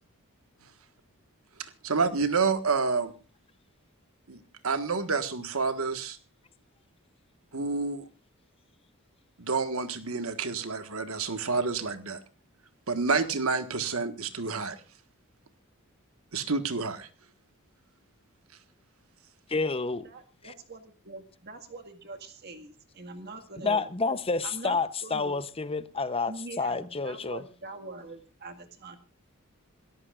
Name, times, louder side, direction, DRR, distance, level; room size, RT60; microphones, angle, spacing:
voice 1, 1.6-3.1 4.3-6.2 7.5-8.1 9.4-12.2 12.9-14.8 16.3-17.1, right 4 dB, 75° right, 1.6 m, -29 dB
voice 2, 19.5-20.1 20.4-20.5 23.6-27.4, left 4 dB, 25° left, 0.8 m, -29 dB
voice 3, 20.0-23.8 24.4-24.8 25.0-25.3 26.3-29.0, right 3 dB, 50° right, 1.9 m, -43 dB
27.0 x 14.0 x 2.5 m
head